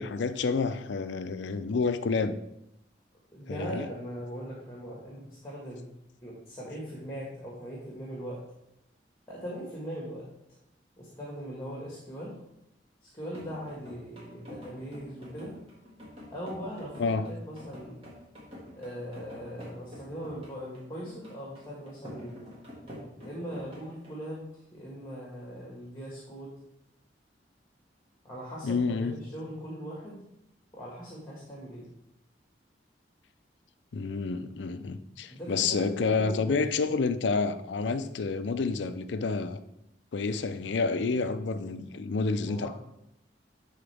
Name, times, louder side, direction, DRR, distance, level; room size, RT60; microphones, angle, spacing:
voice 1, 0.0-2.4 3.5-3.9 17.0-17.3 28.6-29.1 33.9-39.6 40.1-42.7, left 4 dB, 75° left, 0.5 m, -29 dB
voice 2, 3.3-5.9 6.2-8.4 9.3-10.3 11.0-12.4 13.0-15.6 16.3-18.0 18.8-22.5 23.2-24.5 24.7-26.5 28.2-30.2 30.7-31.9 35.3-37.0 42.5-42.7, equal, 15° left, 1.6 m, -40 dB
sound 1, 13.3-24.2, equal, 30° right, 1.8 m, -48 dB
11.0 x 3.9 x 3.4 m
head